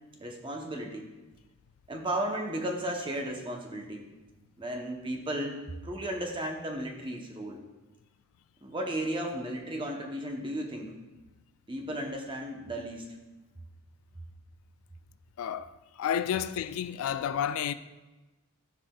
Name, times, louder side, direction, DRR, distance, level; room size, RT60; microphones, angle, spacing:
voice 1, 0.2-1.1 1.9-4.1 4.6-5.6 5.8-7.6 8.6-10.9 11.7-13.1, right 1 dB, 25° right, 0.9 m, -34 dB
voice 2, 15.4-17.7, left 9 dB, 75° left, 0.3 m, -31 dB
13.5 x 4.9 x 2.3 m
head